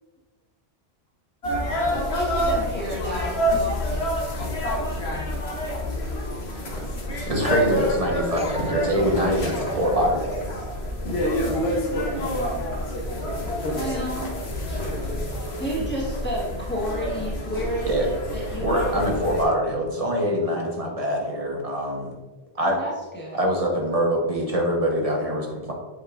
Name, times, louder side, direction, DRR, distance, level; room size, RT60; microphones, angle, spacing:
sound 1, 1.4-19.4, equal, 75° left, 1.4 m, -27 dB
voice 1, 1.9-4.3 7.7-7.9 13.7-14.3 14.7-15.3 15.6-19.0 22.6-23.5, equal, 10° left, -6 dB, 1.4 m, -32 dB
voice 2, 7.3-10.3 17.9-18.1 18.6-22.1 22.6-22.8 23.3-25.7, equal, 35° right, -1 dB, 1.2 m, -24 dB
voice 3, 8.3-10.7 11.2-12.0, left 1 dB, 10° right, 1 dB, 0.4 m, -37 dB
7.9 x 5.2 x 2.5 m, 1.3 s
omnidirectional pair, 1.1 m